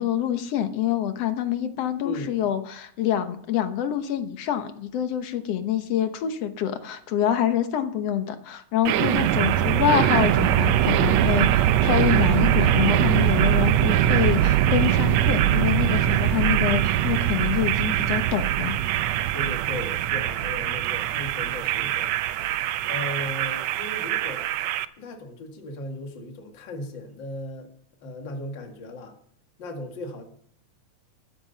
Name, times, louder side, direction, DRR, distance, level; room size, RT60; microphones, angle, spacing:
voice 1, 0.0-18.8 22.5-22.6, left 10 dB, 60° left, 8 dB, 1.9 m, -26 dB
voice 2, 2.0-2.4 9.6-9.9 19.3-22.1 22.8-24.5 25.0-27.7 28.0-29.2 29.6-30.2, left 1 dB, 40° left, 3 dB, 2.3 m, -36 dB
sound 1, 8.9-24.9, right 11 dB, 75° right, 1.6 m, -22 dB
14.0 x 12.5 x 4.1 m, 0.64 s
omnidirectional pair, 3.7 m